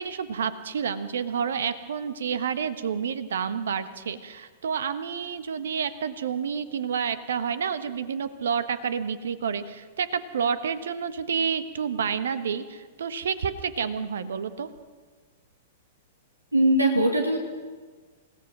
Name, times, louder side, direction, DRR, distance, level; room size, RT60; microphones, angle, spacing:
voice 1, 0.0-14.7, right 7 dB, 65° right, 13 dB, 1.3 m, -29 dB
voice 2, 16.5-17.4, right 1 dB, 85° right, 4 dB, 2.3 m, -20 dB
27.5 x 17.0 x 6.2 m, 1.5 s
figure-of-eight pair, 100°, 0 cm